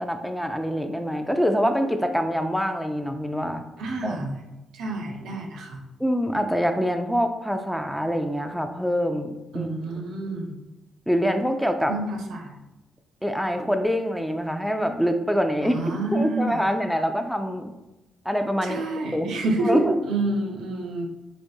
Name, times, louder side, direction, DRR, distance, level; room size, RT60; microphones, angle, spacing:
voice 1, 0.0-3.6 4.0-4.2 6.0-9.7 11.1-11.9 13.2-15.8 16.1-17.7 18.3-18.8 19.1-19.3 19.6-20.0, equal, ahead, 6 dB, 0.3 m, -25 dB
voice 2, 3.8-4.4 4.7-5.8 9.5-10.5 11.9-12.6 15.6-16.6 18.6-21.1, right 2 dB, 80° right, 1 dB, 0.5 m, -28 dB
3.4 x 2.5 x 2.7 m, 0.98 s
supercardioid pair, 50°, 0 cm